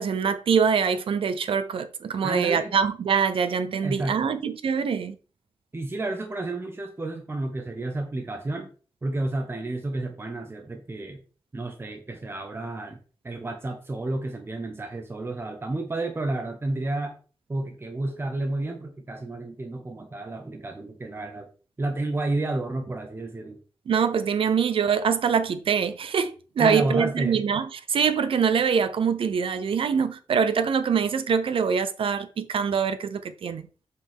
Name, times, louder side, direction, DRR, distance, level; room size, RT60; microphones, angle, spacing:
voice 1, 0.0-5.2 23.9-33.7, right 6 dB, 85° right, 0.7 m, -24 dB
voice 2, 2.2-2.7 3.8-4.4 5.7-8.7 9.0-11.2 11.5-13.0 13.2-17.1 17.5-21.5 21.8-23.6 26.6-27.4, right 2 dB, 25° right, 1.1 m, -31 dB
7.7 x 5.5 x 3.6 m
wide cardioid pair, 140°, 9 cm